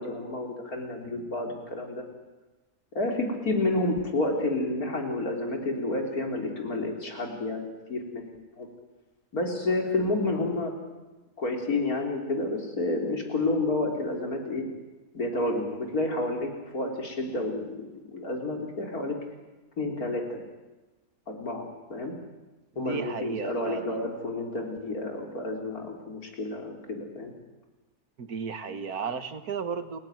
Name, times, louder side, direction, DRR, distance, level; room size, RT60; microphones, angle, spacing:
voice 1, 0.0-2.1 2.9-8.3 8.6-8.7 9.3-10.7 11.4-14.6 15.1-17.9 18.1-19.2 19.8-20.4 21.3-22.1 22.8-27.3, left 2 dB, 80° left, 2 dB, 4.2 m, -30 dB
voice 2, 22.7-24.1 28.2-30.0, right 6 dB, 90° right, 10 dB, 2.1 m, -34 dB
29.0 x 16.5 x 9.3 m, 1.1 s
omnidirectional pair, 1.5 m